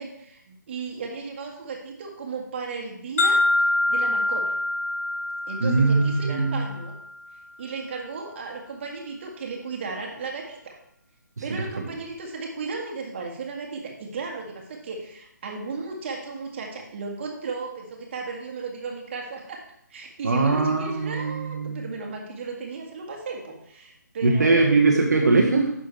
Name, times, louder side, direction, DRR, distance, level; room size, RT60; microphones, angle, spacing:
voice 1, 0.0-4.5 5.5-6.9 7.6-10.8 11.4-19.6 19.9-24.6, right 4 dB, 35° right, 0 dB, 1.7 m, -35 dB
sound 1, 3.2-7.2, left 2 dB, 45° left, 1.6 m, -25 dB
voice 2, 5.6-6.7 11.5-11.6 20.2-21.9 24.2-25.7, right 3 dB, 60° right, 0 dB, 1.3 m, -21 dB
10.5 x 6.2 x 3.3 m, 0.71 s
figure-of-eight pair, 140°, 10 cm